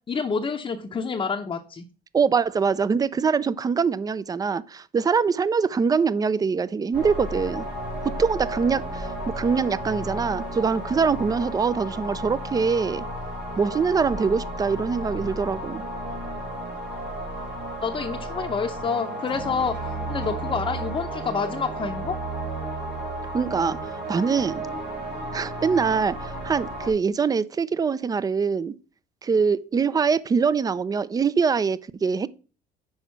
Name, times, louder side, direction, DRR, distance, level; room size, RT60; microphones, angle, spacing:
voice 1, 0.1-1.8 17.8-22.2, left 5 dB, 30° left, 0.7 m, -28 dB
voice 2, 2.1-7.7 8.2-13.0 13.6-15.8 23.3-24.6 25.3-28.7 29.2-32.3, right 5 dB, 20° right, 0.4 m, -23 dB
sound 1, 6.9-26.9, right 1 dB, 85° right, 3.0 m, -33 dB
6.3 x 4.9 x 5.7 m
cardioid pair, 110°, 17 cm